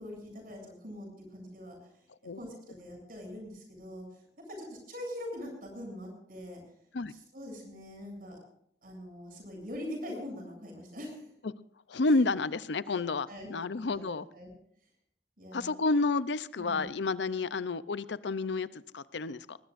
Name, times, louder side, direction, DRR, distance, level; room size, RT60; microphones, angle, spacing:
voice 1, 0.0-1.9 2.3-6.6 7.1-8.4 8.8-11.3 12.9-13.0 13.3-13.5 13.8-14.5 15.4-15.7 16.6-16.9 17.4-17.5, left 1 dB, 50° right, 2 dB, 7.8 m, -43 dB
voice 2, 11.9-14.3 15.5-19.6, left 3 dB, 80° left, 15 dB, 0.6 m, -30 dB
20.0 x 20.0 x 2.6 m, 0.69 s
head